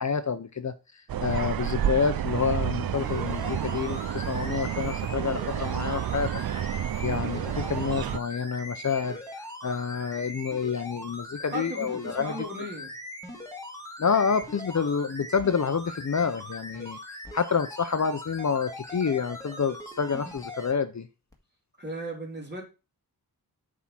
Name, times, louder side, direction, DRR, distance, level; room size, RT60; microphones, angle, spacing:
voice 1, 0.0-6.3 7.0-12.5 14.0-17.0 17.3-21.1, left 6 dB, 50° left, 0.7 m, -28 dB
sound 1, 1.1-8.2, right 10 dB, 65° right, 0.5 m, -30 dB
sound 2, 2.8-20.7 21.3-21.4, left 1 dB, 10° left, 1.7 m, -41 dB
voice 2, 11.5-12.9 21.8-22.6, equal, 25° right, 3.3 m, -36 dB
8.3 x 3.7 x 5.9 m
wide cardioid pair, 85°, 38 cm